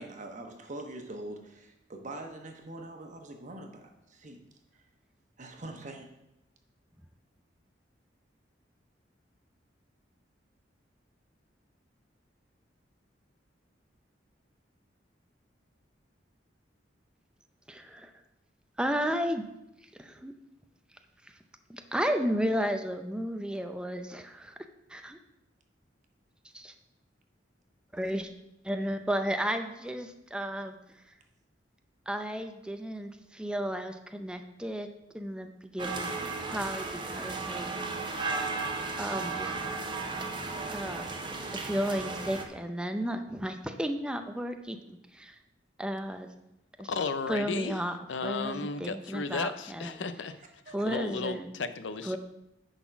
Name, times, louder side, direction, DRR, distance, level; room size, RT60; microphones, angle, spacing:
voice 1, 0.0-4.4 4.7-4.8 5.4-6.1 50.7-50.8, right 2 dB, 45° right, 4 dB, 1.1 m, -43 dB
voice 2, 17.7-18.1 18.8-19.5 20.0-20.3 21.7-24.6 24.9-25.2 26.5-26.7 27.9-28.3 28.6-30.7 32.1-34.9 35.1-36.1 36.5-37.7 39.0-39.5 40.7-41.1 41.5-45.4 45.8-46.3 46.8-46.9 47.3-48.0 48.2-50.1 50.7-51.5 52.0-52.2, equal, 5° right, 6 dB, 0.5 m, -33 dB
sound 1, 35.8-42.4, right 3 dB, 25° right, 0.8 m, -35 dB
voice 3, 46.9-50.4 50.7-52.2, left 4 dB, 85° left, 12 dB, 0.6 m, -34 dB
9.9 x 4.1 x 5.8 m, 0.88 s
head